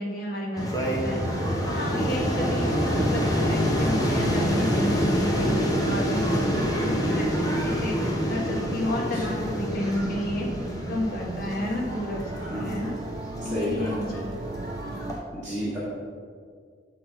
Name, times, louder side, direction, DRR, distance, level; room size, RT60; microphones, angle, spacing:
voice 1, 0.0-2.7 3.0-10.5 10.9-12.2 12.5-12.9 13.4-14.3, left 1 dB, 55° left, -2 dB, 1.4 m, -31 dB
sound 1, 0.6-15.2, equal, 20° left, 0.9 m, -27 dB
sound 2, 1.2-15.2, right 2 dB, 30° right, 0.4 m, -35 dB
sound 3, 1.4-7.4, left 2 dB, 55° right, 1.2 m, -41 dB
voice 2, 1.9-2.4 9.1-9.3 12.4-12.7 13.4-13.9 15.3-15.8, equal, 10° right, -11 dB, 1.6 m, -31 dB
6.4 x 3.9 x 5.6 m, 2.1 s
head